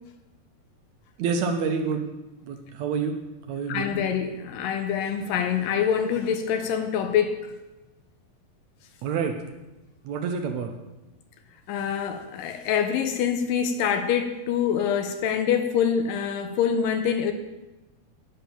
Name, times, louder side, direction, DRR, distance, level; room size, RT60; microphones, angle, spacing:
voice 1, 1.2-2.1 2.4-3.2 3.5-3.9 9.0-9.4 10.0-10.7, right 5 dB, 80° right, 4 dB, 1.6 m, -27 dB
voice 2, 3.7-7.4 11.7-17.3, left 8 dB, 85° left, 7 dB, 2.3 m, -25 dB
10.0 x 7.0 x 5.7 m, 1.1 s
omnidirectional pair, 4.0 m